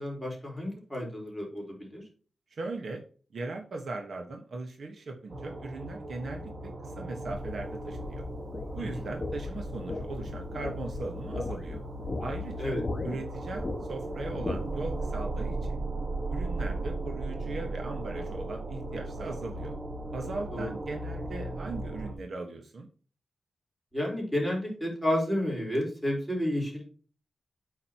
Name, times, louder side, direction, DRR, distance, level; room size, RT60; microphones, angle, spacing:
voice 1, 0.0-2.0 8.9-9.0 12.6-12.8 20.5-20.7 23.9-26.8, left 1 dB, 5° right, -1 dB, 4.4 m, -31 dB
voice 2, 2.5-3.0 3.3-8.2 8.7-11.8 12.2-13.6 13.9-15.8 16.3-19.7 20.1-22.9, right 3 dB, 65° right, 3 dB, 1.4 m, -38 dB
sound 1, 5.3-22.1, right 2 dB, 35° right, 1.5 m, -37 dB
sound 2, 7.3-15.0, left 2 dB, 20° left, 1.6 m, -38 dB
8.9 x 6.4 x 3.0 m, 0.39 s
wide cardioid pair, 130°, 0 cm